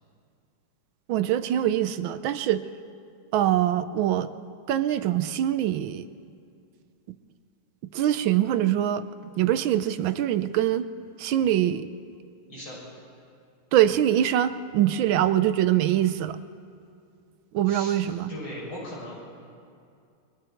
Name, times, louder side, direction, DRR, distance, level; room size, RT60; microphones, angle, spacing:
voice 1, 1.1-2.6 3.3-4.3 4.7-6.1 7.9-9.0 9.4-10.9 11.2-11.9 13.7-16.4 17.5-18.3, right 11 dB, 75° right, 12 dB, 1.4 m, -23 dB
voice 2, 17.7-18.0 18.3-19.2, left 1 dB, 75° left, -5 dB, 8.1 m, -38 dB
30.0 x 22.0 x 4.5 m, 2.4 s
omnidirectional pair, 2.3 m